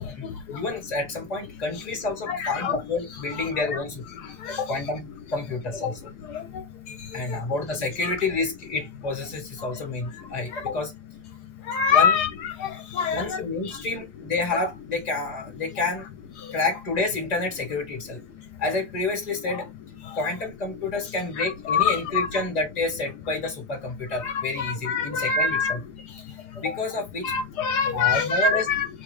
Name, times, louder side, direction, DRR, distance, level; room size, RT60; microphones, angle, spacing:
voice 1, 0.0-4.0 4.5-6.0 7.1-10.9 11.9-12.2 13.1-16.0 16.5-18.2 18.6-19.7 20.1-25.8 26.5-27.3 27.9-28.7, left 3 dB, 25° left, 1.2 m, -29 dB
voice 2, 2.3-2.8 3.6-3.7 11.7-12.7 13.0-13.4 21.4-22.4 24.2-25.7 27.2-28.9, left 6 dB, 75° left, 1.2 m, -24 dB
3.5 x 2.2 x 3.1 m
omnidirectional pair, 1.7 m